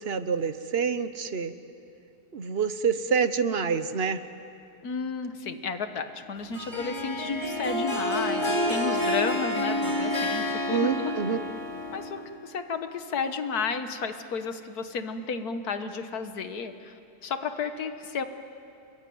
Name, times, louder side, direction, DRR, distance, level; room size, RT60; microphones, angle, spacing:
voice 1, 0.0-1.5 2.3-4.2 10.7-11.4, right 6 dB, 45° right, 11 dB, 1.0 m, -27 dB
voice 2, 4.8-10.9 11.9-16.9 17.2-18.2, left 5 dB, 70° left, 8 dB, 1.8 m, -32 dB
Harp, 6.5-12.3, left 1 dB, 15° left, 3.0 m, -29 dB
26.5 x 22.5 x 9.4 m, 2.6 s
omnidirectional pair, 1.7 m